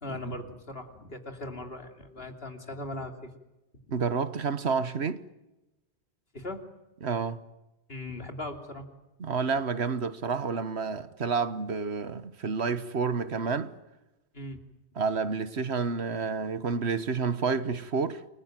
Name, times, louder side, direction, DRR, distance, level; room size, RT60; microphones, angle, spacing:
voice 1, 0.0-3.3 6.3-6.6 7.9-8.9 14.3-14.6, left 1 dB, 60° left, 3.3 m, -39 dB
voice 2, 3.9-5.2 7.0-7.4 9.2-13.7 15.0-18.2, right 5 dB, 75° right, 1.5 m, -29 dB
29.5 x 21.5 x 9.1 m
omnidirectional pair, 1.1 m